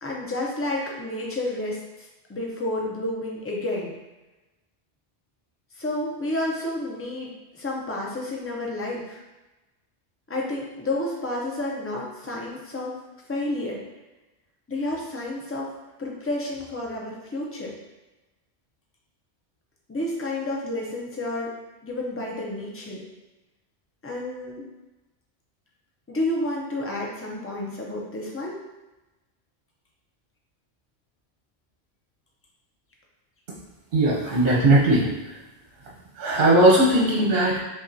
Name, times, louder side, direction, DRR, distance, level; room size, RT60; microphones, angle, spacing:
voice 1, 0.0-3.9 5.8-9.2 10.3-13.0 13.3-13.8 14.7-15.7 16.0-17.7 19.9-21.5 21.8-23.0 24.0-24.7 26.1-28.6, left 1 dB, 20° left, -2 dB, 0.4 m, -30 dB
voice 2, 33.9-35.0 36.2-37.6, right 1 dB, 60° right, -3 dB, 0.9 m, -18 dB
5.1 x 2.4 x 2.7 m, 1.1 s
omnidirectional pair, 1.1 m